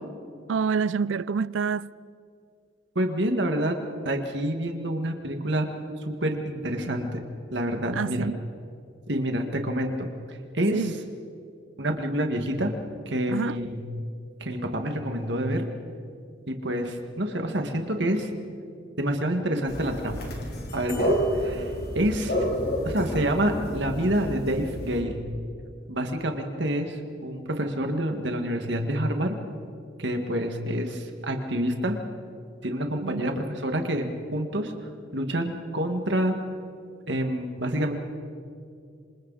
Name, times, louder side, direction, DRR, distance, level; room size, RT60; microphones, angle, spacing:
voice 1, 0.5-1.9 7.9-8.4 10.7-11.0 13.3-13.6 33.0-33.3, right 5 dB, 85° right, 0.4 m, -27 dB
voice 2, 3.0-3.8 4.1-5.7 6.0-7.2 7.5-8.3 9.1-10.9 11.8-12.7 13.1-13.8 14.4-15.7 16.5-18.3 19.0-20.3 20.7-21.2 21.4-22.4 22.9-25.3 25.9-29.4 30.0-32.0 32.6-34.7 35.1-36.4 37.1-38.0, right 1 dB, 65° right, 1.9 m, -27 dB
sound 1, 19.7-25.0, equal, 55° left, 3.2 m, -30 dB
27.0 x 26.5 x 4.2 m
head